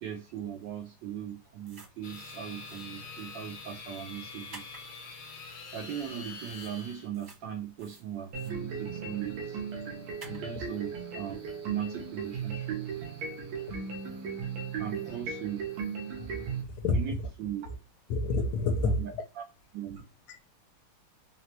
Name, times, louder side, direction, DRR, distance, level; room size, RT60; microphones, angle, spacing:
voice 1, 0.0-4.8 5.7-9.6 10.2-12.8 14.8-15.7 16.9-17.1 17.4-17.7 18.8-19.4 19.7-20.1, right 10 dB, 75° right, 1.1 m, -39 dB
sound 1, 1.6-2.4 2.7-2.8 4.5-4.8 6.5-6.7 7.1-7.4 7.8-8.5 10.2-10.4, right 3 dB, 45° right, 0.6 m, -50 dB
sound 2, 2.0-7.1, left 4 dB, 65° left, 1.4 m, -45 dB
sound 3, 8.3-16.6, right 6 dB, 90° right, 1.7 m, -37 dB
voice 2, 16.6-17.3 18.1-19.1 20.3-20.4, left 2 dB, 80° left, 1.5 m, -28 dB
4.1 x 2.0 x 2.7 m
omnidirectional pair, 2.3 m